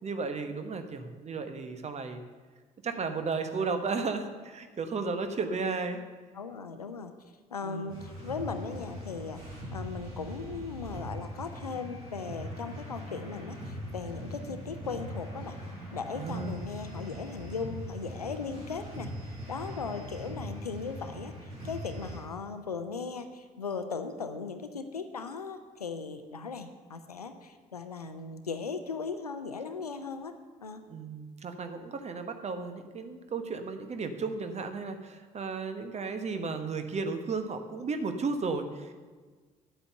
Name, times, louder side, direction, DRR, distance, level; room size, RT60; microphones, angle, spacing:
voice 1, 0.0-2.2 2.8-6.0 7.6-8.0 16.1-16.6 30.9-38.9, right 4 dB, 35° right, 7 dB, 1.2 m, -34 dB
voice 2, 6.3-7.1 7.5-9.4 9.7-15.6 15.9-30.3 30.6-30.8, left 5 dB, 85° left, 9 dB, 0.6 m, -38 dB
sound 1, 7.9-22.2, equal, 75° right, 4.2 m, -41 dB
9.2 x 8.5 x 6.7 m, 1.4 s
figure-of-eight pair, 45°, 19 cm